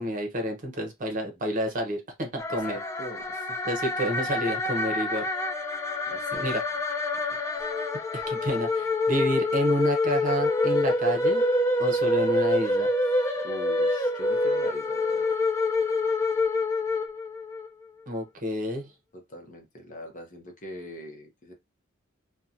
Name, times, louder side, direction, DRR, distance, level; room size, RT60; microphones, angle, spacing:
voice 1, 0.0-2.8 3.7-5.3 6.4-6.6 8.1-11.4 11.8-12.9 18.1-18.9, equal, 40° right, 0.8 m, -29 dB
sound 1, 2.4-17.7, left 2 dB, 15° left, 0.4 m, -26 dB
voice 2, 2.7-3.6 6.1-6.5 7.1-7.4 13.4-15.4 19.1-21.5, equal, 40° left, 0.8 m, -43 dB
2.9 x 2.2 x 2.5 m
head